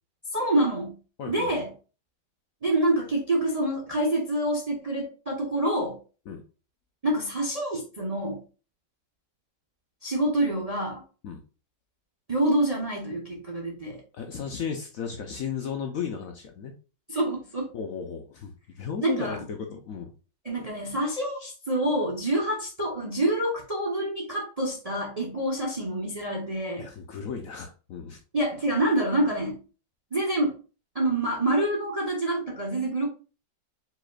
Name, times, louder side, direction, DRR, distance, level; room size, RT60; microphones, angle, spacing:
voice 1, 0.3-0.9 1.3-1.7 2.6-6.0 7.0-8.4 10.0-11.0 12.3-14.0 17.1-17.7 19.0-19.4 20.4-26.9 28.3-29.6 30.1-30.5 30.9-33.1, right 1 dB, 35° right, -1 dB, 0.6 m, -27 dB
voice 2, 14.1-16.7 17.7-20.1 26.8-28.2, left 7 dB, 65° left, 4 dB, 0.8 m, -35 dB
5.0 x 4.1 x 2.3 m, 0.34 s
omnidirectional pair, 1.9 m